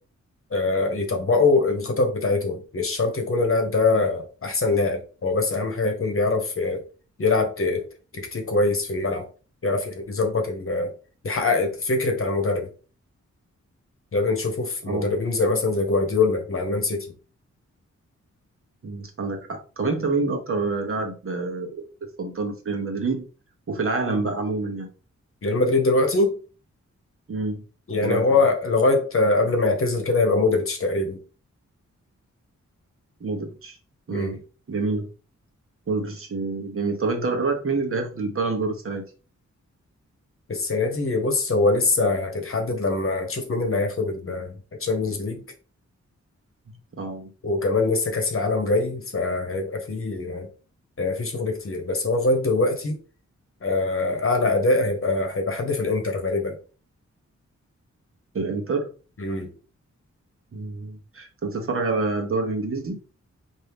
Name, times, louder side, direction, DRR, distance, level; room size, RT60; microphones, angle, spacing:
voice 1, 0.5-6.8 7.2-7.8 8.1-9.3 9.6-10.9 11.2-12.7 14.1-17.1 25.4-26.4 27.9-31.2 34.1-34.4 40.5-45.4 47.4-50.5 51.0-53.0 53.6-56.6 59.2-59.5, left 3 dB, 50° left, 1.0 m, -23 dB
voice 2, 14.8-15.1 18.8-21.8 22.2-23.2 23.7-24.9 27.3-27.6 28.0-28.4 33.2-33.8 34.1-34.4 34.7-35.1 35.9-39.0 47.0-47.3 58.3-58.9 60.5-63.0, right 3 dB, 50° right, 1.0 m, -27 dB
4.5 x 2.7 x 3.4 m
wide cardioid pair, 130°, 29 cm